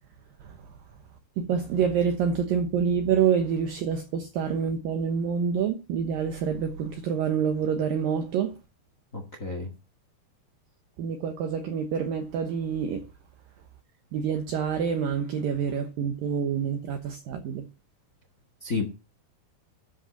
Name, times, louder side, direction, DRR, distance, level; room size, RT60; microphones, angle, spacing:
voice 1, 1.4-8.5 11.0-13.1 14.1-17.7, right 7 dB, 65° right, 2.5 m, -27 dB
voice 2, 9.1-9.7 18.6-18.8, left 4 dB, 55° left, 0.8 m, -30 dB
13.0 x 5.5 x 7.5 m
omnidirectional pair, 4.9 m